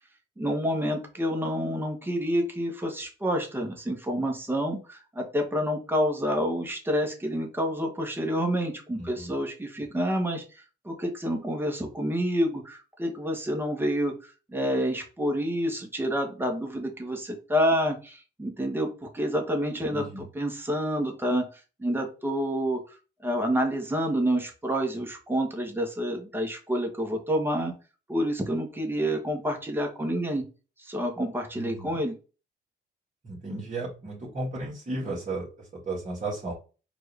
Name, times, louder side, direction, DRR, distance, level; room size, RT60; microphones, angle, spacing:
voice 1, 0.4-10.4 10.8-21.4 21.8-23.0 23.2-27.7 28.1-30.4 30.8-32.1, equal, 10° right, 2 dB, 1.3 m, -28 dB
voice 2, 9.0-9.3 19.9-20.2 31.5-32.0 33.2-36.5, right 2 dB, 35° right, -6 dB, 2.1 m, -34 dB
4.5 x 2.8 x 3.4 m, 0.33 s
cardioid pair, 90°, 20 cm